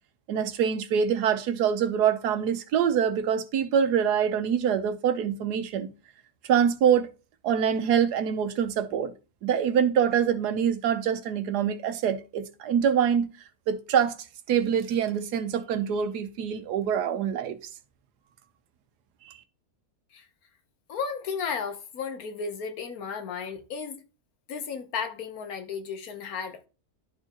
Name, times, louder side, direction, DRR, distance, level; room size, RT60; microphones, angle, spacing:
voice 1, 0.3-5.9 6.4-7.1 7.4-9.1 9.4-13.3 13.7-14.2 14.5-17.6 19.2-19.3, right 8 dB, 90° right, 1.3 m, -25 dB
voice 2, 20.9-24.0 24.5-26.7, left 6 dB, 70° left, 1.4 m, -34 dB
12.0 x 4.5 x 2.9 m
omnidirectional pair, 1.7 m